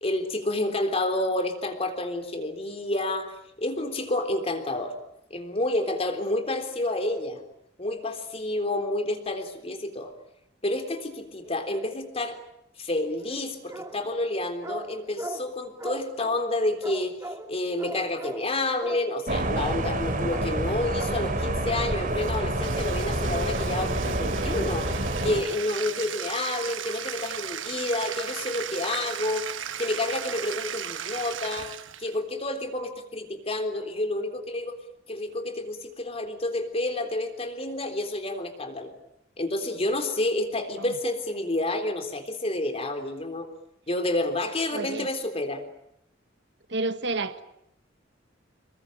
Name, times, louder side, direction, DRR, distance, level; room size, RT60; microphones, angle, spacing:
voice 1, 0.0-4.9 5.3-7.4 7.8-10.1 10.6-12.4 12.8-24.9 25.2-29.5 29.8-31.7 32.0-34.8 35.1-38.9 39.4-43.5 43.9-45.6, left 2 dB, 30° left, 6 dB, 3.6 m, -29 dB
sound 1, 13.2-14.0 14.6-15.5 15.8-16.5 16.8-17.5 17.8-18.5 18.8-19.1 19.6-19.9 20.3-20.7 21.0-21.3, right 1 dB, 15° right, 1.9 m, -38 dB
sound 2, 19.3-25.4, right 1 dB, 45° right, 3.6 m, -28 dB
Bathtub (filling or washing), 22.1-32.2, right 9 dB, 85° right, 1.2 m, -36 dB
voice 2, 44.7-45.1 46.7-47.4, right 3 dB, 65° right, 10 dB, 1.5 m, -29 dB
27.0 x 22.5 x 9.0 m, 0.79 s
head